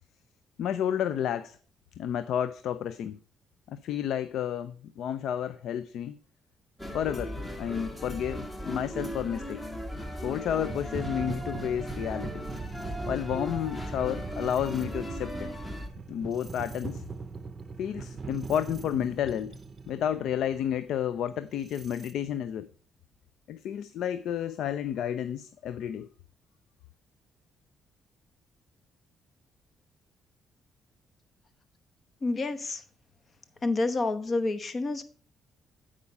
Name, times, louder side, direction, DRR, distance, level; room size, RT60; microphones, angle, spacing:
voice 1, 0.6-1.6 2.0-3.2 3.7-6.2 6.9-9.6 10.2-12.4 13.1-15.5 16.1-17.0 17.8-19.5 19.9-22.7 23.5-26.1, left 9 dB, 75° left, 0.4 m, -31 dB
sound 1, 6.8-15.9, equal, 15° left, 1.5 m, -37 dB
sound 2, 9.5-9.6 10.5-22.1, right 4 dB, 35° right, 0.6 m, -41 dB
voice 2, 32.2-32.8 33.6-35.0, left 3 dB, 40° left, 1.0 m, -28 dB
8.5 x 4.9 x 5.3 m
cardioid pair, 90°, 0 cm